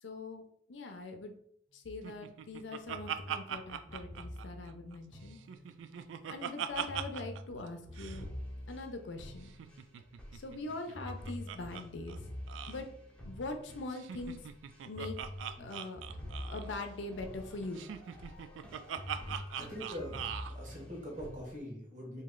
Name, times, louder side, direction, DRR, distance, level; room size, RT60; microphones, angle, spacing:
voice 1, 0.0-1.3 1.7-5.4 6.3-8.3 8.7-9.5 10.3-12.2 12.7-12.9 13.2-14.4 14.9-15.2 15.6-16.0 16.5-17.8, left 2 dB, 75° left, 5 dB, 0.5 m, -42 dB
Laughter, 2.0-5.0 5.3-7.4 7.7-7.8 7.9-8.2 9.4-11.8 12.1-12.2 12.5-12.8 13.9-16.7 17.7-20.5, right 9 dB, 90° right, 0.3 m, -41 dB
sound 1, 2.9-6.0 6.9-21.6, equal, 5° left, 0.7 m, -47 dB
voice 2, 19.6-22.2, equal, 45° right, -2 dB, 1.3 m, -43 dB
3.1 x 2.7 x 3.7 m, 0.69 s
head